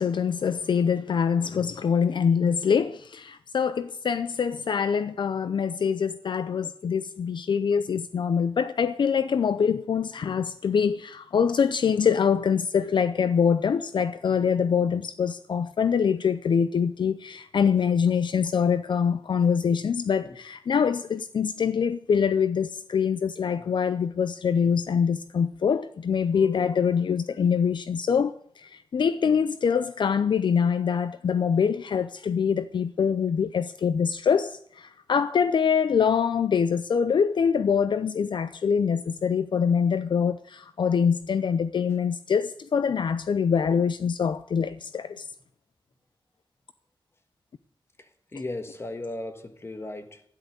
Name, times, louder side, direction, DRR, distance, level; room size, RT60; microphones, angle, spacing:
voice 1, 0.0-45.3, left 6 dB, 60° left, 0.5 m, -24 dB
voice 2, 48.0-50.2, left 2 dB, 30° left, 1.6 m, -37 dB
12.5 x 10.5 x 8.0 m
wide cardioid pair, 120°, 9 cm